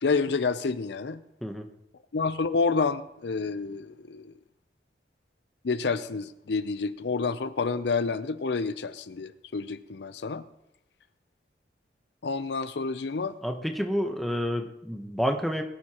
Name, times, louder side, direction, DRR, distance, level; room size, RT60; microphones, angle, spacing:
voice 1, 0.0-1.2 2.1-4.3 5.6-10.4 12.2-13.3, left 4 dB, 70° left, 13 dB, 0.5 m, -29 dB
voice 2, 13.4-15.6, equal, ahead, 4 dB, 0.9 m, -29 dB
20.0 x 11.0 x 2.9 m, 0.84 s
head